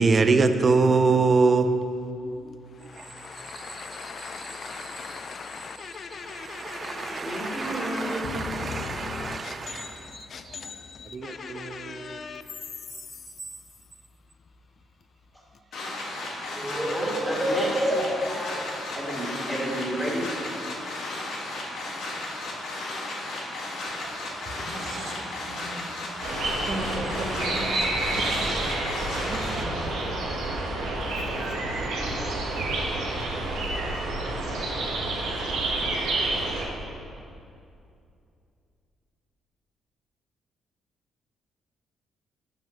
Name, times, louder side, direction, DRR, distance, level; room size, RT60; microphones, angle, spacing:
voice 1, 0.0-1.7 2.8-3.1 3.3-5.3 6.0-10.7 11.0-12.2, right 4 dB, 40° right, 0.5 m, -26 dB
voice 2, 2.2-2.6 2.8-12.4, left 5 dB, 50° left, 0.5 m, -39 dB
voice 3, 6.9-8.9 16.5-18.7 18.9-20.3 20.5-20.6, equal, 5° right, 2.1 m, -29 dB
sound 1, 15.7-29.6, left 2 dB, 80° left, 1.7 m, -34 dB
voice 4, 24.4-25.8 26.5-27.6 28.1-28.5 28.8-29.9 30.2-30.6 31.8-32.7, right 2 dB, 65° right, 1.1 m, -38 dB
sound 2, 26.2-36.6, right 2 dB, 85° right, 1.3 m, -29 dB
7.1 x 5.8 x 6.3 m
cardioid pair, 90°, 0 cm